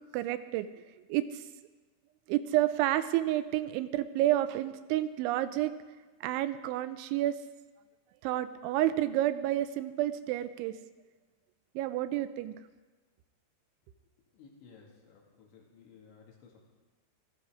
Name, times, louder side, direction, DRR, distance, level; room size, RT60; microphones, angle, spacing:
voice 1, 0.1-0.7 1.1-1.4 2.3-5.7 6.2-7.4 8.2-10.8 11.8-12.5, right 14 dB, 90° right, 12 dB, 3.0 m, -30 dB
voice 2, 14.3-16.6, left 5 dB, 75° left, -1 dB, 4.5 m, -56 dB
15.5 x 13.5 x 4.9 m, 1.3 s
omnidirectional pair, 5.3 m